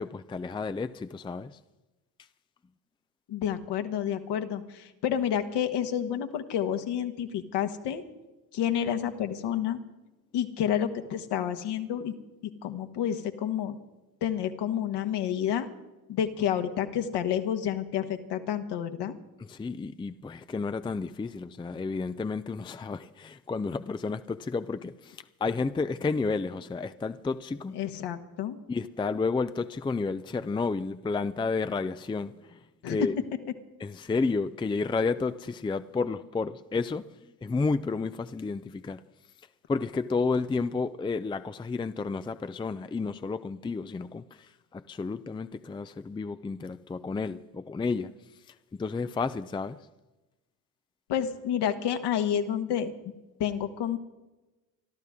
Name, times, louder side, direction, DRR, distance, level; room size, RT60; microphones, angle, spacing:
voice 1, 0.0-1.6 19.4-27.8 28.7-33.2 33.8-39.0 39.7-48.1 48.5-49.9, left 4 dB, 10° left, 0.5 m, -31 dB
voice 2, 3.3-8.0 8.5-9.8 10.3-12.1 12.6-13.8 14.2-15.7 16.1-19.2 27.7-28.6 32.8-33.0 51.1-52.9 53.4-54.0, left 9 dB, 60° left, 1.6 m, -29 dB
26.0 x 12.5 x 3.7 m
hypercardioid pair, 55°, 46 cm